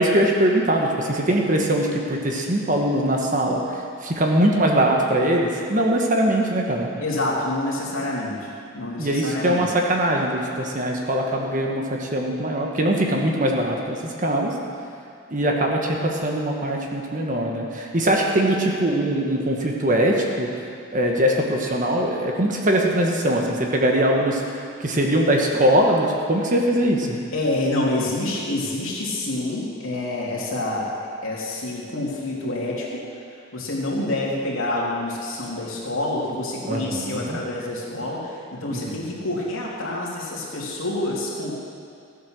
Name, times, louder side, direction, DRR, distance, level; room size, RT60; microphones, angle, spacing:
voice 1, 0.0-6.9 9.0-14.5 15.3-20.5 20.9-24.4 24.8-27.2 36.6-37.4 38.7-39.0, right 1 dB, 40° right, 0 dB, 1.4 m, -22 dB
voice 2, 7.0-9.7 27.3-30.9 31.2-33.0 33.5-41.5, left 2 dB, 75° left, -4 dB, 2.9 m, -27 dB
15.5 x 8.4 x 6.5 m, 2.4 s
head